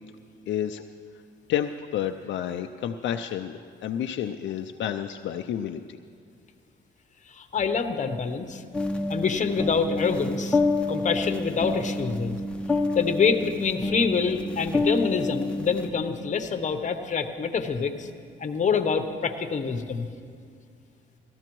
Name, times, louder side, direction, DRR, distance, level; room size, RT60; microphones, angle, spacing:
voice 1, 0.5-0.8 1.5-6.0, left 10 dB, 70° left, 6 dB, 0.4 m, -30 dB
voice 2, 7.3-8.6 9.1-10.6 10.9-12.4 12.9-18.1 18.4-20.1, left 5 dB, 40° left, 7 dB, 0.9 m, -26 dB
sound 1, 8.7-15.9, left 2 dB, 5° left, 0.8 m, -28 dB
18.0 x 13.5 x 3.0 m, 2.2 s
cardioid pair, 90°, 20 cm